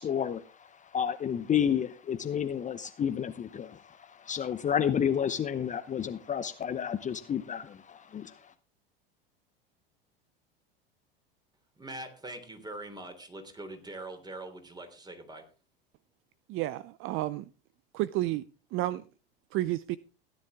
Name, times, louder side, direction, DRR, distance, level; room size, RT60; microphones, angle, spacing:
voice 1, 0.0-8.5, left 8 dB, 25° left, 0.9 m, -31 dB
voice 2, 11.8-15.5, right 2 dB, 15° right, 3.3 m, -43 dB
voice 3, 16.5-17.4 17.9-18.4 18.7-19.0 19.5-20.0, right 16 dB, 45° right, 0.6 m, -31 dB
16.5 x 10.0 x 3.5 m
hypercardioid pair, 90°, 30 cm